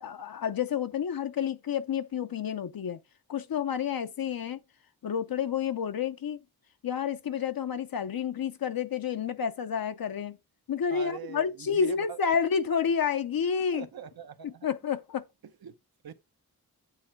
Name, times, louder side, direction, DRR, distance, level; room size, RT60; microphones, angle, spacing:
voice 1, 0.0-3.0 3.3-4.6 5.0-6.4 6.8-10.4 10.7-13.9 14.4-15.2, left 7 dB, 65° left, 0.7 m, -30 dB
voice 2, 10.9-12.2 13.6-14.7 15.6-15.8 16.0-16.1, right 6 dB, 70° right, 0.8 m, -42 dB
8.3 x 3.7 x 4.5 m
wide cardioid pair, 110°, 38 cm